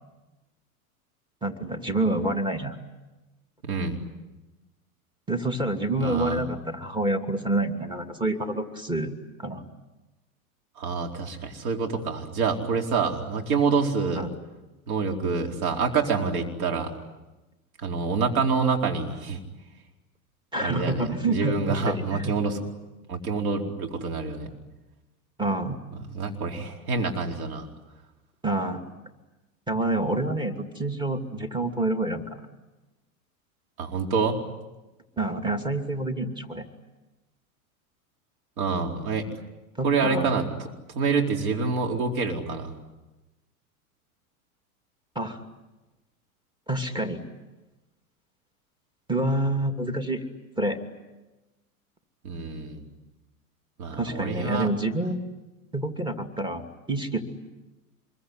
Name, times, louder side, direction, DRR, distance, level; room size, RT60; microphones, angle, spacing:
voice 1, 1.4-2.8 5.3-9.6 14.2-14.3 20.5-22.3 25.4-25.8 28.4-28.9 29.7-32.5 35.2-36.7 39.7-40.3 45.1-45.4 46.7-47.2 49.1-50.3 50.6-50.8 53.9-55.2 55.7-57.2, right 2 dB, 10° right, 5 dB, 2.8 m, -28 dB
voice 2, 3.6-4.0 6.0-6.4 10.8-14.2 14.9-16.9 17.8-19.4 20.6-22.6 23.1-24.5 26.1-27.7 33.8-34.4 38.6-39.3 39.8-40.4 40.9-42.7 52.2-52.9 53.8-54.7, right 4 dB, 70° right, 2 dB, 4.5 m, -27 dB
26.5 x 22.5 x 9.9 m, 1.1 s
hypercardioid pair, 100°, 43 cm